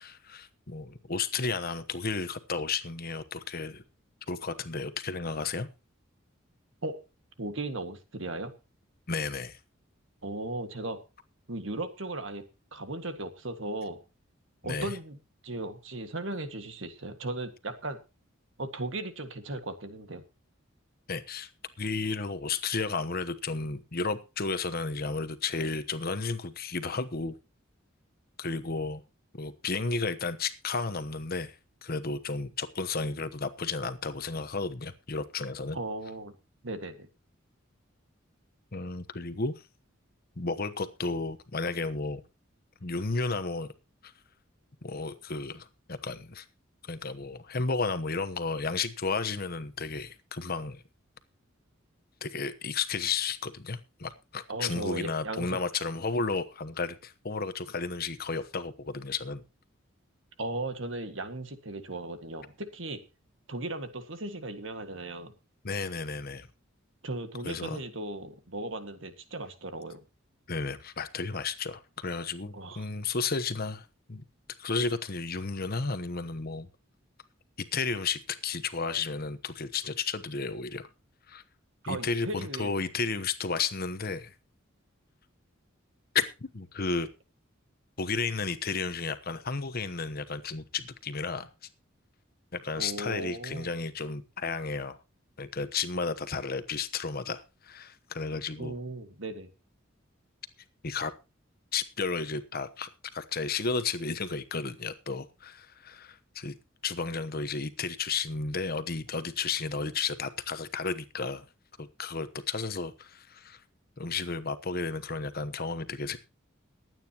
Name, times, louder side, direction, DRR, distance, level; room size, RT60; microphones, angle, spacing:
voice 1, 0.0-3.8 4.3-5.7 9.1-9.6 14.6-14.9 21.1-21.5 21.8-27.4 28.4-29.0 29.4-35.8 38.7-39.6 40.4-42.2 42.8-43.7 44.0-44.1 44.8-46.5 46.8-50.8 52.2-59.4 65.6-66.5 67.4-67.8 70.5-74.2 74.6-76.7 77.6-80.9 81.3-81.4 81.9-84.3 86.1-87.1 88.0-91.5 92.5-95.0 95.4-98.7 100.8-101.1 101.7-106.6 106.8-111.5 111.8-113.6 114.0-116.2, left 4 dB, 50° left, 1.1 m, -33 dB
voice 2, 7.4-8.5 10.2-11.0 11.5-12.5 12.7-14.0 14.6-15.2 15.4-18.0 18.6-20.2 35.7-36.3 36.6-37.1 54.5-55.6 60.4-63.0 63.5-65.3 67.0-70.0 72.5-72.9 81.8-82.7 92.8-93.7 98.6-99.5, right 2 dB, 70° right, 1.9 m, -36 dB
22.0 x 9.2 x 3.0 m
head